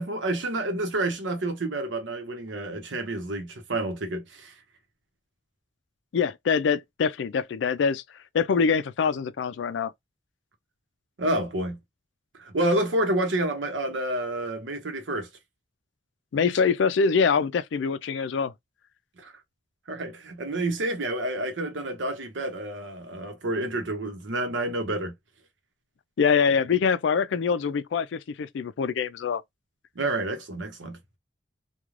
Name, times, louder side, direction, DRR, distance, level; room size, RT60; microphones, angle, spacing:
voice 1, 0.0-4.5 11.2-11.8 12.4-15.3 19.2-19.3 19.9-25.1 29.9-31.0, right 1 dB, 90° right, 0.8 m, -29 dB
voice 2, 6.1-8.0 8.3-9.9 16.3-18.5 26.2-29.4, left 5 dB, 85° left, 0.4 m, -24 dB
2.4 x 2.2 x 3.0 m
head